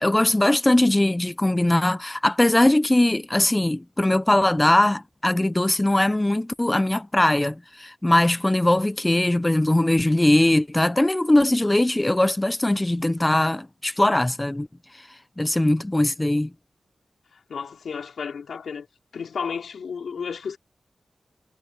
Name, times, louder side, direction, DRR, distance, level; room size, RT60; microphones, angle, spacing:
voice 1, 0.0-14.7 14.9-16.5, left 1 dB, 15° left, 0.4 m, -21 dB
voice 2, 17.5-18.9 19.1-20.6, left 6 dB, 90° left, 4.2 m, -32 dB
wide cardioid pair, 120°, 0 cm